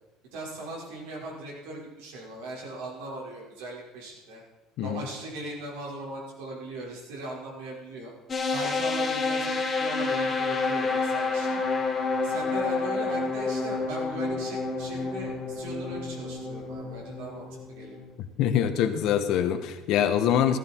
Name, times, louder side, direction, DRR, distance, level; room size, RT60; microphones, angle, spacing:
voice 1, 0.3-4.4 4.8-8.1 8.5-9.5 9.8-11.6 12.2-18.0, right 2 dB, 90° right, -3 dB, 5.7 m, -39 dB
sound 1, 8.3-18.1, left 3 dB, 25° left, 2.9 m, -29 dB
voice 2, 18.4-20.6, left 9 dB, 60° left, 8 dB, 1.4 m, -24 dB
14.5 x 14.0 x 4.7 m, 1.0 s
cardioid pair, 140°, 0 cm